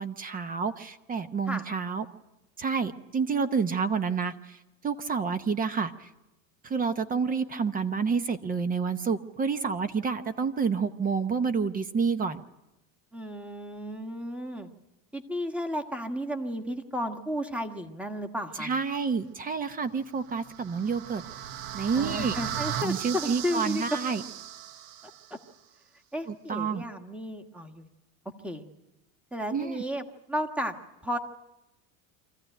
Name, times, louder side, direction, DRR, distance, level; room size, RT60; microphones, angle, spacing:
voice 1, 0.0-2.0 2.6-4.6 4.8-6.1 6.6-12.4 18.6-21.2 21.7-22.3 22.8-24.2 26.3-26.8 29.5-29.8, right 5 dB, 20° right, 12 dB, 0.8 m, -29 dB
voice 2, 13.1-14.7 15.1-18.7 22.0-23.8 24.1-24.2 25.3-25.4 26.1-27.9 28.4-28.6 29.3-30.8 31.0-31.2, equal, 5° right, 5 dB, 1.3 m, -33 dB
sound 1, 20.2-25.3, right 10 dB, 70° right, 1.3 m, -37 dB
24.5 x 15.0 x 9.1 m, 0.97 s
supercardioid pair, 140°, 41 cm